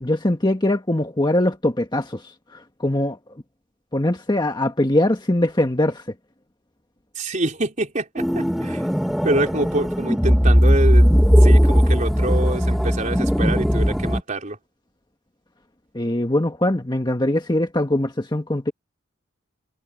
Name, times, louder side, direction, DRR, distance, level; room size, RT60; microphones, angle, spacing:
voice 1, 0.0-2.2 2.5-3.2 3.9-6.0 15.9-18.7, left 1 dB, 20° left, 1.6 m, -22 dB
voice 2, 7.2-8.9 9.2-11.1 11.4-14.6, right 1 dB, 40° right, 4.1 m, -26 dB
sound 1, 8.2-14.2, equal, ahead, 1.6 m, -17 dB
head